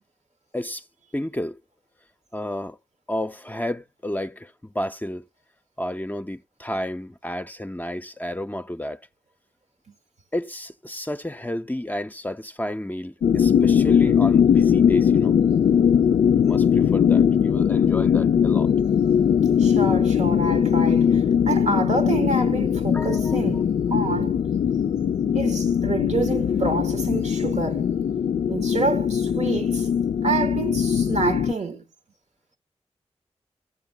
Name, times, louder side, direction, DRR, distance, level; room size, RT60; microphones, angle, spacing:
voice 1, 0.5-0.8 1.1-1.6 2.3-2.8 3.1-5.3 5.8-9.0 10.3-15.4 16.4-18.7 22.9-23.4, left 1 dB, 15° left, 0.6 m, -31 dB
sound 1, 13.2-31.5, left 8 dB, 75° left, 0.4 m, -20 dB
voice 2, 19.6-24.4 25.3-27.9 28.5-29.9 30.2-31.8, right 3 dB, 70° right, 1.2 m, -27 dB
14.5 x 7.1 x 2.2 m
cardioid pair, 40°, 12 cm